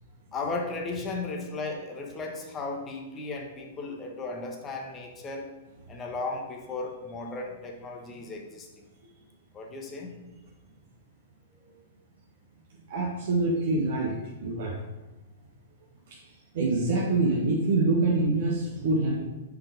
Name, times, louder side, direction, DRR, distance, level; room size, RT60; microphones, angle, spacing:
voice 1, 0.3-5.5 5.9-8.7 9.5-10.2, left 3 dB, 25° left, 0 dB, 1.3 m, -35 dB
voice 2, 12.9-14.8 16.5-19.2, right 2 dB, 60° right, -3 dB, 1.3 m, -25 dB
5.8 x 4.8 x 5.2 m, 1.1 s
figure-of-eight pair, 105°, 0 cm